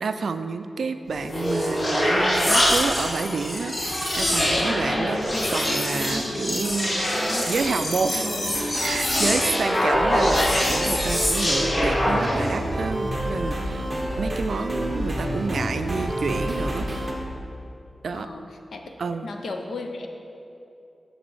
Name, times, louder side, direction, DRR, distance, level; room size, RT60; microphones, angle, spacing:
voice 1, 0.0-5.2 5.5-6.9 7.5-8.3 8.8-13.9 14.2-16.9 18.0-18.3 19.0-19.3, right 4 dB, 70° right, 9 dB, 0.3 m, -29 dB
sound 1, 1.1-12.6, left 1 dB, 35° left, 1.0 m, -24 dB
sound 2, 3.8-7.8 8.1-8.8 10.1-10.2, equal, 15° left, 1.6 m, -34 dB
sound 3, 8.5-17.1, equal, 20° right, 0.9 m, -29 dB
voice 2, 18.1-18.4 18.7-18.8 19.2-20.1, left 3 dB, 85° left, 4 dB, 0.6 m, -34 dB
6.5 x 6.0 x 4.7 m, 2.8 s
wide cardioid pair, 175°, 0 cm